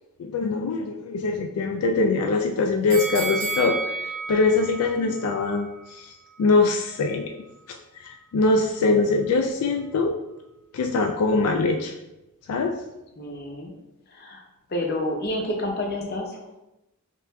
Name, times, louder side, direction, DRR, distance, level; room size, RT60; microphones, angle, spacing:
voice 1, 0.2-6.1 6.4-7.3 8.0-10.1 10.7-12.0 12.5-12.7, left 3 dB, 80° left, 4 dB, 0.3 m, -23 dB
sound 1, 2.9-6.0 6.4-6.5, right 3 dB, 50° right, 1.5 m, -32 dB
voice 2, 4.9-5.3 13.2-13.7 14.1-14.4 14.7-16.4, left 1 dB, 45° left, 1 dB, 0.6 m, -29 dB
5.7 x 2.5 x 2.2 m, 0.95 s
head